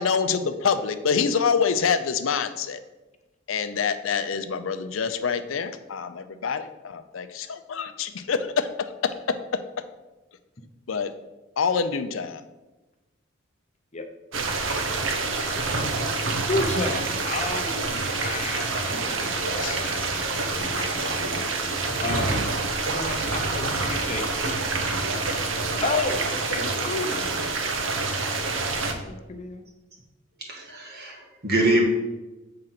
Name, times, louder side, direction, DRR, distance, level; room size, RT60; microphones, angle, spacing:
voice 1, 0.0-2.8 3.5-9.6 10.9-11.1 11.6-12.4 19.4-19.8 26.6-27.3, left 6 dB, 85° left, 10 dB, 0.6 m, -26 dB
sound 1, 14.3-28.9, right 3 dB, 75° right, 0.9 m, -27 dB
voice 2, 16.5-21.7 22.0-22.4 22.9-24.3 25.8-27.2 28.8-29.6, left 2 dB, 35° left, 5 dB, 0.8 m, -32 dB
voice 3, 30.4-31.8, right 1 dB, 55° right, 0 dB, 1.8 m, -24 dB
7.9 x 3.8 x 5.8 m, 1.1 s
head